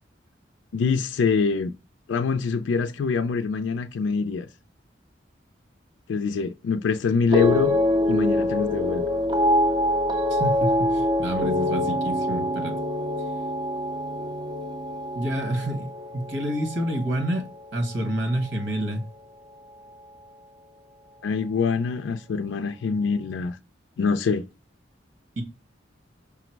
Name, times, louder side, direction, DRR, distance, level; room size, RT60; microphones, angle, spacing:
voice 1, 0.7-1.7 2.1-4.5 6.1-7.8 8.1-9.1 21.2-23.6 24.0-24.4, left 5 dB, 80° left, 0.4 m, -24 dB
sound 1, 7.3-17.7 18.0-18.5, left 1 dB, 25° right, 0.4 m, -25 dB
voice 2, 10.3-12.8 15.1-17.4 17.7-19.0 25.4-25.5, right 1 dB, 80° right, 1.4 m, -28 dB
5.7 x 2.0 x 4.4 m
head